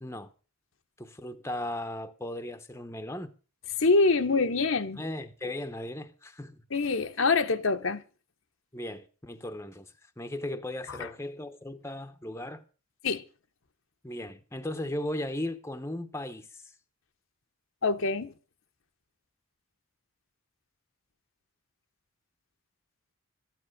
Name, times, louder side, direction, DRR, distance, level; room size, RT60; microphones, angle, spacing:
voice 1, 1.0-3.3 5.0-6.6 8.7-12.6 14.0-16.7, left 1 dB, 10° left, 0.8 m, -37 dB
voice 2, 3.8-5.0 6.7-8.0 10.9-11.1 13.0-13.2 17.8-18.3, left 3 dB, 65° left, 1.0 m, -25 dB
13.5 x 10.0 x 6.6 m
head